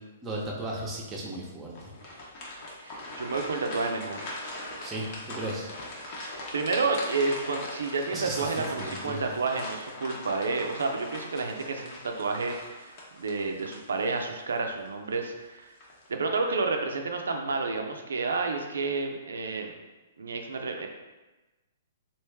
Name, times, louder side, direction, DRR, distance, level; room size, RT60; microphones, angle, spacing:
voice 1, 0.2-1.8 4.8-5.7 8.1-8.5 8.8-9.2, right 1 dB, 15° right, -3 dB, 0.8 m, -35 dB
sound 1, 1.7-14.4 14.8-15.0 15.6-16.1, left 1 dB, 45° left, 0.9 m, -40 dB
voice 2, 2.8-4.3 6.1-6.2 6.5-15.7 16.1-19.7 20.2-20.9, right 3 dB, 80° right, 4 dB, 0.5 m, -30 dB
3.2 x 2.6 x 3.4 m, 1.1 s
hypercardioid pair, 130°, 0 cm